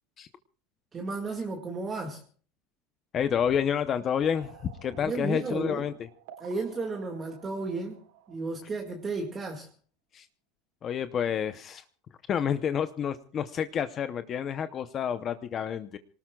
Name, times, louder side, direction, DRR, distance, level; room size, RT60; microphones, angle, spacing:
voice 1, 0.9-2.2 4.9-5.9 6.4-8.0 8.3-9.7, right 3 dB, 15° right, 2 dB, 1.9 m, -33 dB
voice 2, 3.1-5.9 10.1-10.3 10.8-11.8 12.3-16.0, left 8 dB, 25° left, 10 dB, 0.7 m, -29 dB
sound 1, 4.2-9.6, right 10 dB, 80° right, 4.1 m, -54 dB
27.5 x 19.0 x 2.3 m, 0.43 s
supercardioid pair, 170°, 0 cm